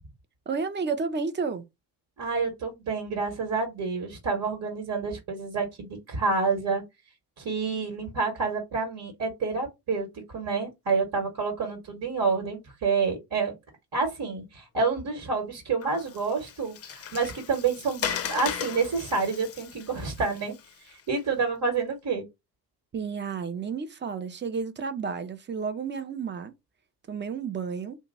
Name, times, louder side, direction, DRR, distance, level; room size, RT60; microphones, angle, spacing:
voice 1, 0.5-1.6 22.9-26.5 27.1-28.0, right 5 dB, 25° right, 0.7 m, -31 dB
voice 2, 2.2-6.8 7.4-13.5 13.9-20.5 20.8-22.2, right 4 dB, 45° right, 1.5 m, -28 dB
Water, 15.8-21.2, left 8 dB, 30° left, 0.6 m, -37 dB
2.8 x 2.3 x 4.1 m
hypercardioid pair, 60°, 49 cm